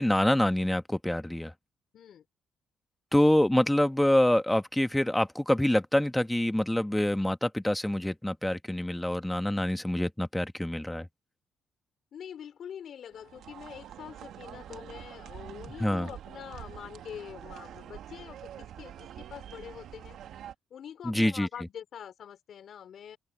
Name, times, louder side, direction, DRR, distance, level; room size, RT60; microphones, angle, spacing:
voice 1, 0.0-1.5 3.1-11.0 15.8-16.1 21.1-21.5, left 1 dB, 5° left, 1.5 m, -26 dB
voice 2, 1.9-2.2 12.1-20.2 20.7-23.2, left 9 dB, 65° left, 4.6 m, -45 dB
sound 1, 13.1-20.6, right 10 dB, 75° right, 2.0 m, -46 dB
open air
cardioid pair, 90°, 0 cm